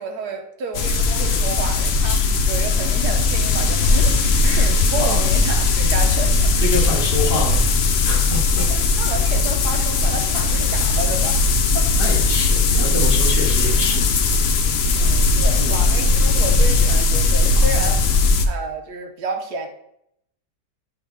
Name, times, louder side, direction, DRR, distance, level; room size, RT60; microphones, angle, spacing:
voice 1, 0.0-4.2 4.4-6.5 7.3-7.4 8.6-11.4 11.7-11.9 14.9-18.1 18.4-19.7, right 3 dB, 70° right, 3 dB, 1.4 m, -30 dB
sound 1, 0.7-18.5, left 3 dB, 85° left, 0.5 m, -18 dB
voice 2, 6.6-7.6 8.0-8.6 12.0-14.1 15.5-15.8 17.6-18.3, left 1 dB, 30° left, -4 dB, 2.0 m, -27 dB
8.6 x 4.2 x 3.5 m, 0.75 s
omnidirectional pair, 1.8 m